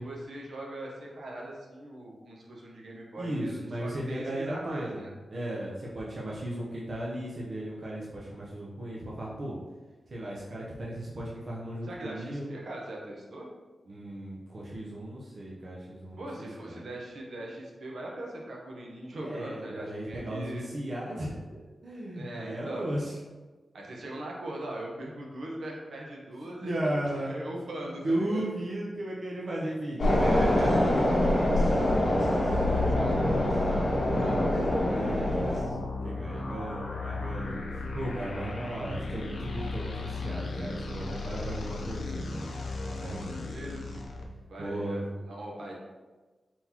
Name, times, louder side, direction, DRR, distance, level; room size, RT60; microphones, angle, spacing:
voice 1, 0.0-5.1 11.8-13.5 16.2-20.7 22.1-22.9 23.7-26.7 27.1-28.5 30.2-30.7 32.0-33.6 34.2-35.0 38.4-38.5 43.5-44.0 44.5-45.8, right 1 dB, 70° right, -2 dB, 0.9 m, -41 dB
voice 2, 3.2-5.0 5.3-9.6 10.1-12.5 13.9-16.8 19.2-23.2 26.6-27.5 27.8-31.5 34.8-37.7 37.9-42.5 43.0-43.5 44.6-45.1, right 1 dB, 40° right, -5 dB, 0.6 m, -35 dB
sound 1, 30.0-35.6, left 1 dB, 50° left, 1.1 m, -25 dB
sound 2, 31.0-44.2, left 3 dB, 70° left, 0.5 m, -35 dB
4.2 x 3.9 x 2.8 m, 1.3 s
wide cardioid pair, 170°, 0 cm